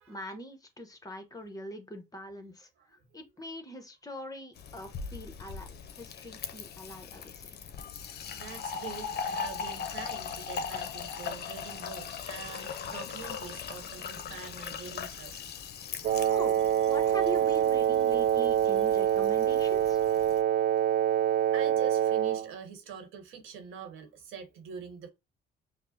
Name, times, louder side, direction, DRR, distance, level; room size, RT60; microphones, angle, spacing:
voice 1, 0.1-5.7 5.9-7.5 16.3-20.0, equal, 20° left, 0.9 m, -43 dB
Fill (with liquid), 4.6-20.4, left 6 dB, 55° left, 0.6 m, -40 dB
voice 2, 8.3-15.7 21.5-25.1, right 6 dB, 85° right, 1.0 m, -44 dB
Wind instrument woodwind instrument, 16.0-22.5, right 11 dB, 50° right, 0.4 m, -25 dB
5.1 x 2.0 x 2.6 m
cardioid pair, 90°, 20 cm